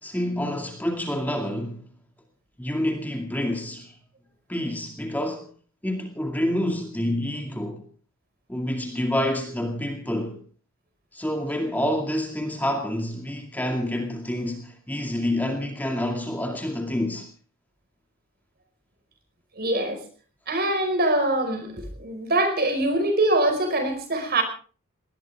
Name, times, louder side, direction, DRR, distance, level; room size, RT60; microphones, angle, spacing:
voice 1, 0.0-1.9 2.6-3.9 4.5-5.5 5.8-7.9 8.5-10.4 11.1-17.3, left 1 dB, 10° left, 3 dB, 2.3 m, -28 dB
voice 2, 19.6-20.0 20.5-24.4, right 1 dB, 45° right, 7 dB, 5.1 m, -23 dB
20.0 x 19.5 x 3.6 m, 0.42 s
head